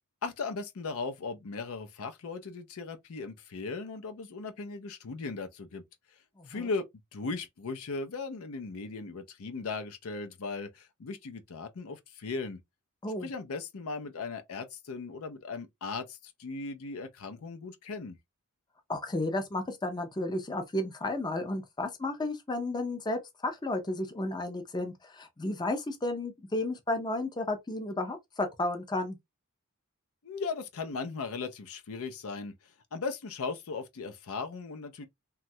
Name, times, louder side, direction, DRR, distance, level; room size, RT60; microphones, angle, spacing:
voice 1, 0.2-5.8 6.5-6.9 7.1-12.6 13.2-18.2 30.2-32.5 32.9-35.1, left 4 dB, 65° left, 0.5 m, -37 dB
voice 2, 6.4-6.7 13.0-13.3 18.9-29.2, left 2 dB, 20° left, 0.5 m, -33 dB
3.0 x 2.3 x 2.6 m
head